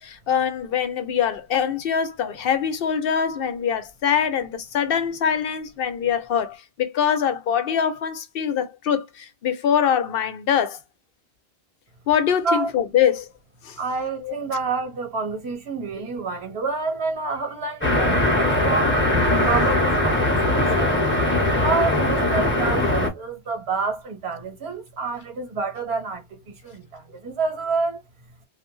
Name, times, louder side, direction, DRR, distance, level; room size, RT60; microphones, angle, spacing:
voice 1, 0.0-10.8 12.1-13.3 13.6-13.8 14.2-14.3 19.3-19.5, left 8 dB, 65° left, 0.7 m, -23 dB
voice 2, 13.8-19.0 19.3-21.0 21.6-28.0, right 4 dB, 85° right, 1.2 m, -28 dB
sound 1, 17.8-23.1, left 1 dB, 10° left, 0.8 m, -20 dB
2.5 x 2.2 x 3.0 m
omnidirectional pair, 1.1 m